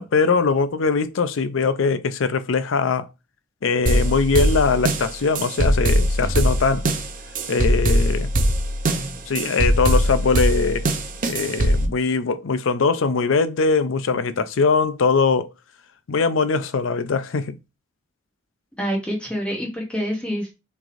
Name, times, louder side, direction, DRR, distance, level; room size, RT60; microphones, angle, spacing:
voice 1, 0.0-3.1 3.6-6.8 7.5-8.3 9.3-10.9 11.2-15.5 16.1-17.6, left 4 dB, 75° left, 0.5 m, -21 dB
sound 1, 3.9-11.9, equal, 45° right, 0.6 m, -21 dB
voice 2, 18.8-20.5, equal, 5° left, 1.0 m, -26 dB
6.1 x 3.3 x 2.5 m
head